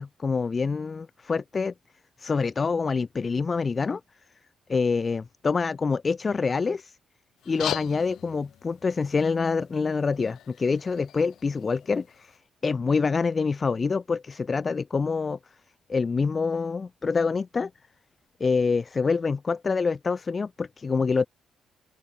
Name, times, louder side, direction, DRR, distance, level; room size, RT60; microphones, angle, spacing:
voice 1, 0.0-1.7 2.2-4.0 4.7-7.0 7.5-15.4 15.9-17.7 18.4-21.3, left 4 dB, 40° left, 0.6 m, -26 dB
sound 1, 7.4-12.4, left 11 dB, 75° left, 1.2 m, -39 dB
open air
cardioid pair, 70°, 0 cm